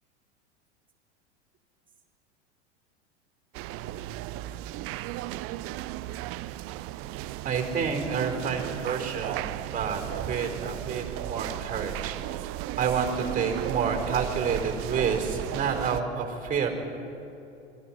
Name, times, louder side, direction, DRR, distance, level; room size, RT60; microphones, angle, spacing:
sound 1, 3.5-16.0, right 15 dB, 40° right, 0.7 m, -35 dB
voice 1, 7.4-12.2 12.8-16.7, right 6 dB, 25° right, 3 dB, 4.3 m, -29 dB
27.5 x 22.5 x 4.4 m, 2.8 s
figure-of-eight pair, 85°, 35 cm